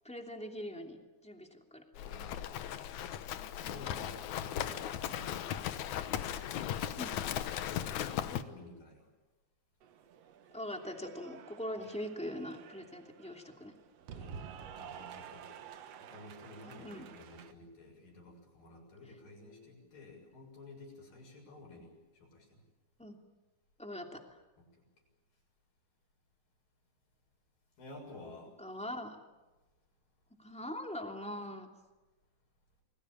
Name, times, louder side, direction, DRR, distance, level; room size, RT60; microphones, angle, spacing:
voice 1, 0.0-1.8 3.6-3.8 7.0-7.1 10.5-13.7 16.6-17.1 23.0-23.2 23.8-24.2 28.6-29.2 30.4-31.7, left 1 dB, ahead, 3 dB, 1.7 m, -42 dB
Livestock farm animals working animals, 2.0-8.4, left 10 dB, 75° left, 1.7 m, -37 dB
voice 2, 2.0-2.6 3.5-5.5 7.6-9.1 14.1-15.6 16.0-22.6 24.7-24.8 27.8-28.5, left 2 dB, 55° left, 0 dB, 8.4 m, -52 dB
Cheering / Applause, 9.8-17.5, right 7 dB, 90° right, 1.4 m, -51 dB
29.5 x 21.0 x 8.8 m, 1.1 s
omnidirectional pair, 4.8 m